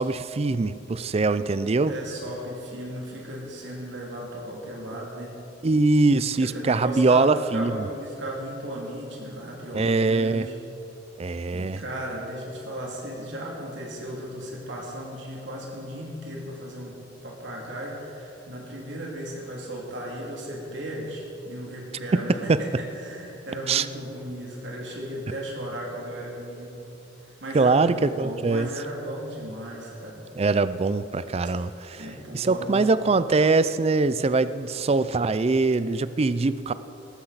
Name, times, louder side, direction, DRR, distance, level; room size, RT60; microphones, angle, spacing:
voice 1, 0.0-1.9 5.6-7.9 9.7-10.5 11.2-11.8 22.1-22.6 23.7-23.9 27.5-28.7 30.4-32.0 32.3-36.7, right 3 dB, 35° right, 14 dB, 0.4 m, -22 dB
voice 2, 1.9-5.4 6.4-10.5 11.5-16.9 17.2-26.9 27.4-30.2 32.0-32.9, right 1 dB, 80° right, -3 dB, 2.7 m, -35 dB
18.0 x 14.0 x 4.1 m, 3.0 s
head